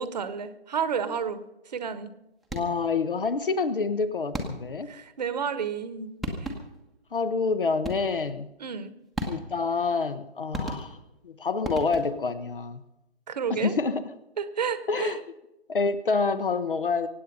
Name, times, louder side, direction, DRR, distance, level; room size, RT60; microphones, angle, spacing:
voice 1, 0.0-2.1 4.9-6.1 6.4-6.5 8.6-8.9 13.3-13.8 14.4-15.2, right 6 dB, 40° right, 12 dB, 1.4 m, -31 dB
sound 1, 2.4-2.9 4.3-4.9 5.9-6.0 6.2-6.9 7.8-8.3 9.2-9.7 10.5-11.2 11.6-12.3, equal, ahead, 1.1 m, -35 dB
voice 2, 2.5-4.9 7.1-8.5 9.3-11.0 11.2-12.8 13.5-14.0 14.9-15.2 15.7-17.1, left 4 dB, 55° left, 12 dB, 1.2 m, -27 dB
24.0 x 9.4 x 5.5 m, 0.91 s
figure-of-eight pair, 140°, 32 cm